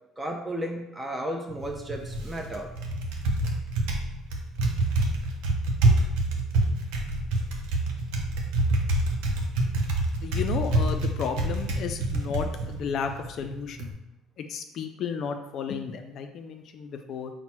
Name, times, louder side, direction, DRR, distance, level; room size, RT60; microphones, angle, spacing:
voice 1, 0.2-2.7, right 1 dB, 15° right, 2 dB, 0.7 m, -33 dB
Typing, 1.5-13.9, right 2 dB, 80° right, 0.6 m, -27 dB
voice 2, 10.2-13.9 14.4-17.3, left 6 dB, 60° left, 6 dB, 0.4 m, -33 dB
4.2 x 2.1 x 4.3 m, 0.94 s
supercardioid pair, 80°, 0 cm